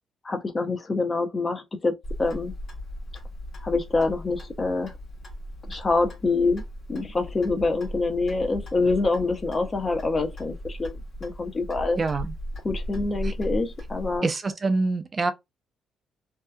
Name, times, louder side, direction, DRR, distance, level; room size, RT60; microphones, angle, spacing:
voice 1, 0.2-2.5 3.6-4.9 5.6-6.6 6.9-12.0 12.6-14.3, left 3 dB, 30° left, 0.6 m, -26 dB
Clock, 2.0-14.2, equal, 55° left, 1.2 m, -37 dB
voice 2, 12.0-12.3 13.2-13.3 14.2-15.3, right 3 dB, 35° right, 0.5 m, -25 dB
2.7 x 2.3 x 2.2 m
cardioid pair, 90°, 0 cm